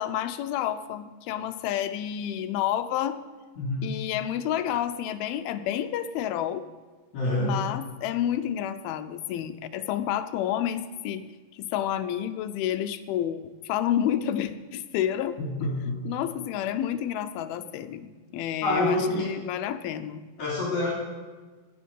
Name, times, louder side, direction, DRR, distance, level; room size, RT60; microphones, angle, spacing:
voice 1, 0.0-3.2 3.8-6.6 7.4-11.2 11.5-15.7 16.0-20.2, left 10 dB, 85° left, 10 dB, 2.6 m, -30 dB
voice 2, 7.1-7.6 15.4-16.0 18.6-19.3 20.4-20.9, left 1 dB, 50° left, -5 dB, 4.2 m, -27 dB
18.0 x 10.5 x 5.5 m, 1.4 s
omnidirectional pair, 4.3 m